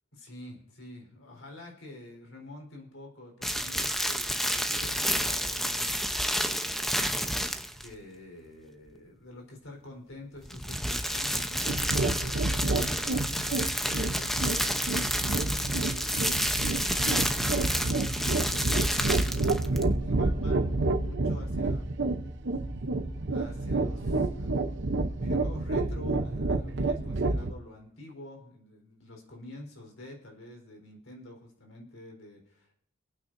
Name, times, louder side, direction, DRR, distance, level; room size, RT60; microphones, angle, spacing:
voice 1, 0.1-7.2 7.8-16.4 16.8-18.7 19.1-21.9 23.3-24.5 24.8-32.7, left 1 dB, 80° left, 1 dB, 4.2 m, -47 dB
sound 1, 3.4-7.9 10.4-19.9, equal, ahead, 0.8 m, -30 dB
sound 2, 11.7-27.5, right 2 dB, 65° right, 0.8 m, -29 dB
26.0 x 9.2 x 2.7 m, 0.67 s
head